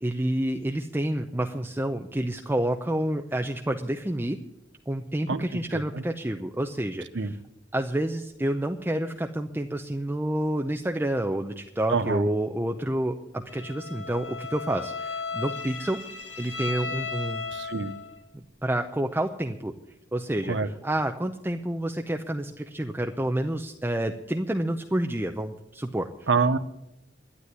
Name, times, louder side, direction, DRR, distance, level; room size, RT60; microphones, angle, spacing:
voice 1, 0.0-4.4 4.9-7.4 7.7-16.0 16.4-17.4 18.3-19.7 20.1-26.3, right 1 dB, 10° right, 5 dB, 0.6 m, -29 dB
voice 2, 5.3-6.0 7.1-7.3 11.9-12.3 17.5-17.9 20.5-20.7 26.3-26.6, right 4 dB, 75° right, 11 dB, 0.8 m, -26 dB
Bowed string instrument, 13.5-18.2, left 4 dB, 70° left, 2.1 m, -35 dB
12.5 x 9.8 x 9.8 m, 0.87 s
head